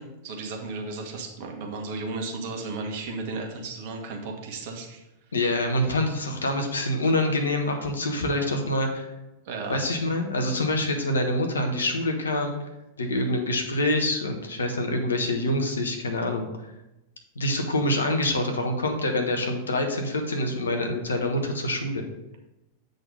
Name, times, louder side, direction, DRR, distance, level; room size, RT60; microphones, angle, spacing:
voice 1, 0.0-5.0 9.4-9.8, right 3 dB, 50° right, 2 dB, 1.3 m, -34 dB
voice 2, 5.3-9.1 9.7-12.5 13.0-16.5 17.3-22.1, left 1 dB, 70° left, 4 dB, 1.1 m, -26 dB
7.9 x 4.0 x 5.3 m, 0.95 s
figure-of-eight pair, 90°, 0 cm